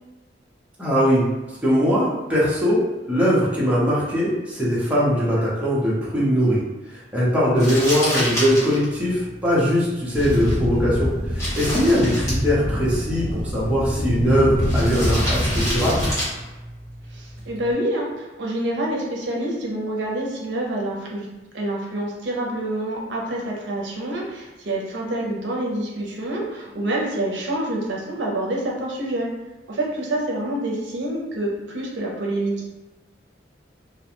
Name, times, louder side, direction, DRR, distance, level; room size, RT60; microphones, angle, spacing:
voice 1, 0.8-1.3 1.6-6.6 7.1-16.1, equal, 5° right, -8 dB, 0.7 m, -21 dB
Crumpling crinkling, 7.5-17.7, equal, 15° left, 1.0 m, -31 dB
sound 1, 10.1-16.1, equal, 60° left, 0.7 m, -25 dB
voice 2, 17.1-21.3 21.5-29.3 29.7-32.7, right 1 dB, 75° right, -2 dB, 0.6 m, -27 dB
2.4 x 2.2 x 2.9 m, 1.1 s
head